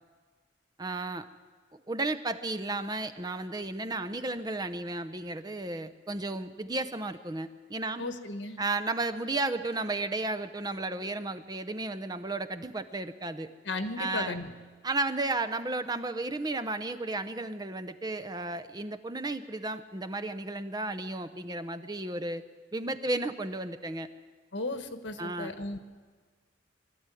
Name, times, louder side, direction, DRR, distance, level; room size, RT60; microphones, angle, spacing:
voice 1, 0.8-1.2 1.7-8.0 8.6-13.5 14.0-14.4 14.8-22.4 22.7-24.1 25.2-25.5, right 2 dB, 20° right, 9 dB, 0.7 m, -33 dB
voice 2, 8.0-8.6 13.7-14.5 24.5-25.8, left 2 dB, 75° left, 8 dB, 1.4 m, -35 dB
22.5 x 13.5 x 9.1 m, 1.5 s
head